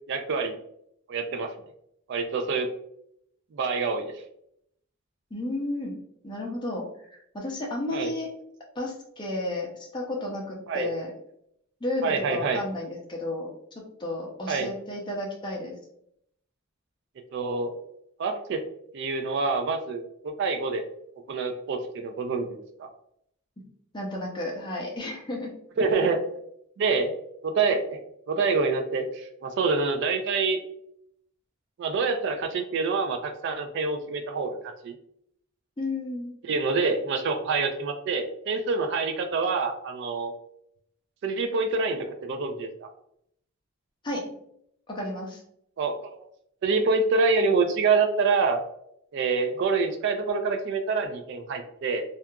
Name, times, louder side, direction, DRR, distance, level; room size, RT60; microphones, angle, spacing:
voice 1, 0.1-0.6 1.1-1.5 2.1-2.7 3.5-4.1 7.9-8.1 10.7-10.9 12.0-12.6 14.5-14.7 17.3-17.8 18.2-18.6 18.9-20.8 21.3-22.9 25.8-26.2 26.8-27.1 27.4-28.0 28.3-30.6 31.8-34.9 36.4-40.3 41.2-42.7 45.8-45.9 46.6-48.6 49.1-52.0, right 4 dB, 55° right, 6 dB, 0.3 m, -26 dB
voice 2, 5.3-6.0 6.2-8.3 8.7-11.1 11.8-13.5 13.8-15.7 23.6-23.7 23.9-25.5 35.8-36.3 44.0-44.2 44.9-45.4, left 1 dB, 20° left, -1 dB, 0.5 m, -32 dB
2.8 x 2.3 x 2.2 m, 0.73 s
head